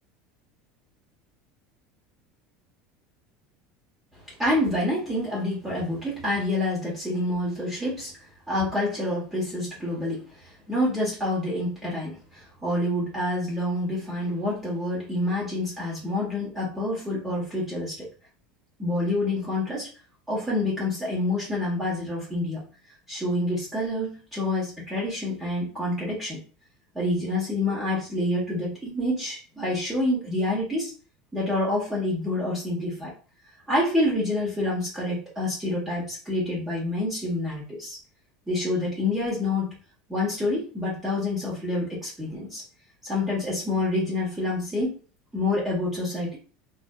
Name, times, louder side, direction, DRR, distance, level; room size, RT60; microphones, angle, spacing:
voice 1, 4.4-8.1 8.5-18.1 18.8-19.9 20.3-22.6 23.1-26.4 26.9-30.9 31.3-33.1 33.7-38.0 38.5-39.7 40.1-42.6 43.0-45.0 45.3-46.4, left 1 dB, 10° right, -6 dB, 1.0 m, -27 dB
2.6 x 2.3 x 2.3 m, 0.36 s
supercardioid pair, 140°, 3 cm